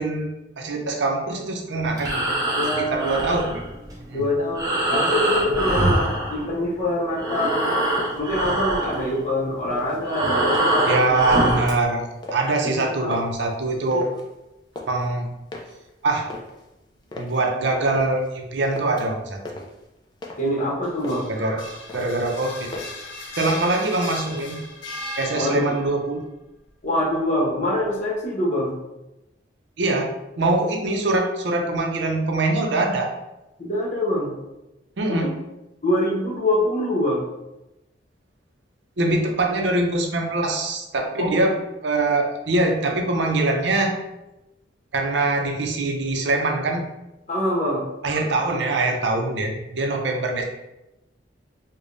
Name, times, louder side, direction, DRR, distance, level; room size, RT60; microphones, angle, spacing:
voice 1, 0.0-2.3 2.8-3.6 4.1-4.2 10.9-14.1 14.9-15.3 16.0-16.3 17.2-19.4 21.3-22.7 23.4-24.6 25.2-26.2 29.8-33.1 35.0-35.3 39.0-44.0 44.9-46.8 48.0-50.4, right 2 dB, 70° right, 2 dB, 0.5 m, -23 dB
Breathing, 1.9-6.9 7.1-11.8, right 1 dB, 20° right, 0.7 m, -24 dB
voice 2, 2.5-3.1 4.1-7.9 8.1-11.2 12.6-13.1 13.9-14.0 20.4-21.3 25.3-25.7 26.8-28.8 33.6-34.3 35.1-35.3 35.8-37.3 41.2-41.4 47.3-47.9, left 1 dB, 40° left, -4 dB, 1.0 m, -24 dB
sound 1, 7.9-8.3 8.7-9.4 9.7-11.0 11.4-11.7 12.2-12.7 13.0-14.3 14.5-15.1 15.5-17.4 17.9-18.4 18.6-19.2 19.5-20.6 20.9-21.4 21.7-22.3 22.7-23.1 23.5-23.9 24.2-24.9, left 2 dB, 25° left, 0.4 m, -39 dB
sound 2, 20.8-26.0, left 2 dB, 90° left, 0.6 m, -37 dB
4.9 x 2.2 x 2.6 m, 0.94 s
head